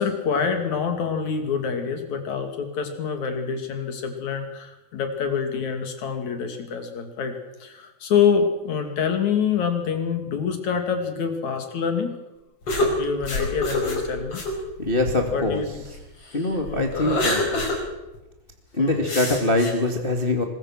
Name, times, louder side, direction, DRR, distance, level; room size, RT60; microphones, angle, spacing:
voice 1, 0.0-12.2 12.8-14.4 15.3-15.8 16.7-16.9 18.8-19.1, left 6 dB, 70° left, 5 dB, 3.8 m, -26 dB
sound 1, 12.7-16.0 16.4-17.8 18.1-18.2 19.0-19.7, left 2 dB, 50° left, 5.9 m, -27 dB
voice 2, 14.9-15.6 16.3-17.5 18.7-20.4, left 2 dB, 20° left, 3 dB, 1.7 m, -23 dB
23.5 x 21.5 x 6.3 m, 1.0 s
omnidirectional pair, 3.5 m